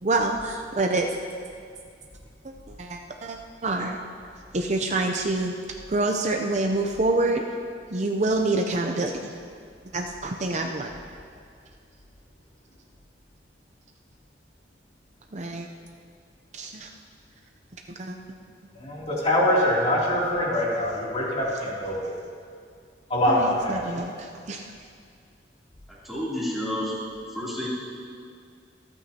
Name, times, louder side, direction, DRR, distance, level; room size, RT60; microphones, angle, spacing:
voice 1, 0.0-1.1 2.7-3.4 3.6-4.0 4.5-5.5 5.9-7.4 7.9-9.3 9.9-10.9 15.3-15.7 16.5-16.9 18.0-18.2 23.3-24.7, right 2 dB, 40° right, 3 dB, 0.6 m, -26 dB
voice 2, 18.7-22.1 23.1-23.8, left 1 dB, 35° left, -6 dB, 2.9 m, -24 dB
voice 3, 26.0-26.9 27.3-27.7, left 1 dB, ahead, -8 dB, 3.0 m, -29 dB
26.0 x 9.0 x 2.9 m, 2.2 s
head